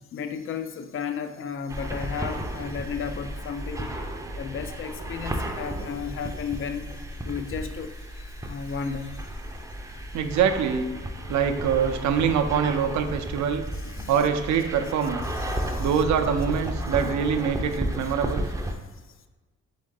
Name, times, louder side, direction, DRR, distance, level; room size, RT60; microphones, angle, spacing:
voice 1, 0.0-3.9 4.4-6.9 7.2-9.2 13.8-14.1 15.4-15.9 17.0-17.1, left 6 dB, 45° left, 9 dB, 0.4 m, -34 dB
sound 1, 1.7-18.7, equal, 10° right, 0.5 m, -33 dB
voice 2, 10.1-10.9 11.3-13.6 14.1-15.3 15.8-18.5, right 7 dB, 70° right, 7 dB, 0.5 m, -24 dB
3.8 x 3.7 x 3.7 m, 1.3 s
cardioid pair, 90°, 30 cm